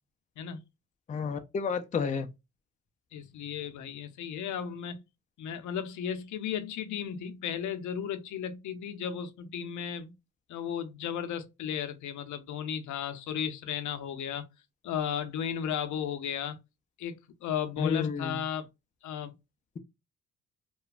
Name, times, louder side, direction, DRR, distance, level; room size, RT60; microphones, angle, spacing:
voice 1, 1.1-2.3 17.8-18.4, left 6 dB, 25° left, 0.4 m, -30 dB
voice 2, 3.1-5.0 5.4-10.1 10.5-14.4 14.8-16.6 17.0-18.7 19.0-19.3, left 8 dB, 75° left, 0.6 m, -35 dB
3.0 x 2.2 x 2.3 m
cardioid pair, 90°, 30 cm